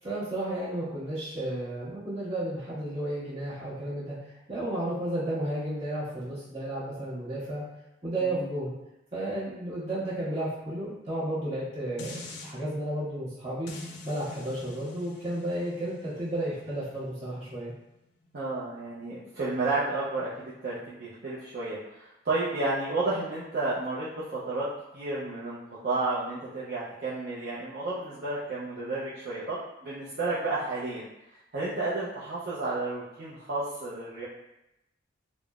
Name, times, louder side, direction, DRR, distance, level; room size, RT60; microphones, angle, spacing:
voice 1, 0.0-4.2 4.5-7.6 8.0-8.7 9.1-13.7 14.0-17.7, right 1 dB, 35° right, -10 dB, 1.3 m, -32 dB
voice 2, 8.2-8.6 18.3-24.7 24.9-25.6 25.8-31.0 31.5-34.2, right 2 dB, 55° right, -9 dB, 0.5 m, -32 dB
sound 1, 12.0-12.5 13.7-18.8 19.3-19.4, left 2 dB, 65° left, 0.4 m, -46 dB
3.5 x 2.0 x 2.3 m, 0.88 s
head